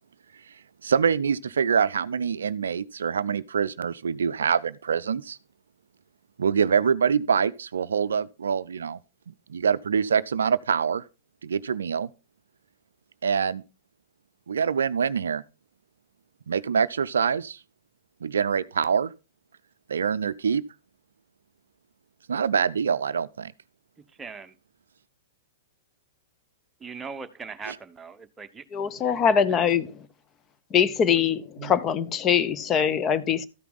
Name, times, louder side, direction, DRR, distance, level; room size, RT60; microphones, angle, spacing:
voice 1, 0.5-5.4 6.4-9.0 9.3-11.1 11.4-12.1 13.2-13.6 14.5-15.4 16.5-17.6 18.2-19.1 19.9-20.6 22.3-23.5 27.7-27.8 31.6-31.7, right 6 dB, 75° right, 0.4 m, -25 dB
voice 2, 24.2-24.5 26.8-28.6 29.5-29.6, right 5 dB, 15° right, 1.0 m, -39 dB
voice 3, 28.7-30.0 30.7-33.5, left 7 dB, 25° left, 0.8 m, -23 dB
13.0 x 5.7 x 3.9 m
figure-of-eight pair, 105°, 0 cm